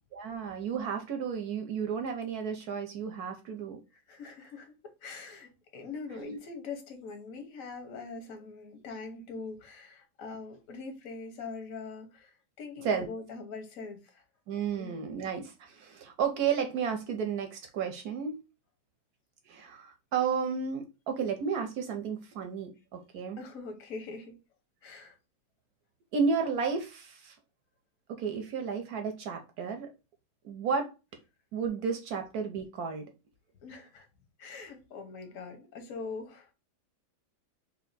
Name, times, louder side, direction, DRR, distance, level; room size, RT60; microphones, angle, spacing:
voice 1, 0.1-3.8 6.2-6.4 12.8-13.1 14.5-18.4 19.5-23.4 26.1-27.3 28.1-29.9 30.4-30.9 31.5-33.1, right 6 dB, 70° right, 0.9 m, -32 dB
voice 2, 3.9-14.2 14.8-15.0 23.4-24.4 24.8-25.2 33.6-34.1 34.4-36.5, left 4 dB, 50° left, 1.1 m, -43 dB
3.3 x 2.7 x 3.8 m
omnidirectional pair, 2.2 m